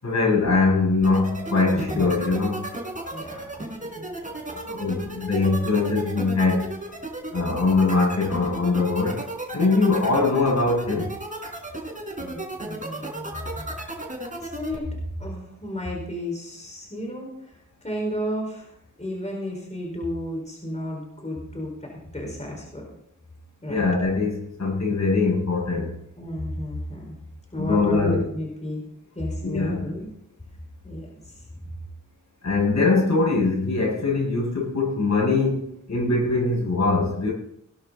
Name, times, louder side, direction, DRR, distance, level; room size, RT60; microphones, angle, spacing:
voice 1, 0.0-2.6 4.5-6.7 7.3-9.2 9.5-11.1 23.7-26.0 27.6-28.3 29.4-29.9 32.4-37.3, left 3 dB, 60° left, -2 dB, 7.1 m, -22 dB
sound 1, 1.0-14.8, right 2 dB, 25° right, 4.9 m, -34 dB
voice 2, 1.6-2.2 3.1-3.5 4.0-4.1 4.7-4.8 12.2-13.7 14.4-17.3 17.8-18.7 19.0-22.9 23.6-23.8 26.2-27.2 27.5-28.8 29.2-30.1 30.8-31.3, equal, 20° left, 0 dB, 5.3 m, -32 dB
19.5 x 11.5 x 4.2 m, 0.75 s
wide cardioid pair, 65°, 32 cm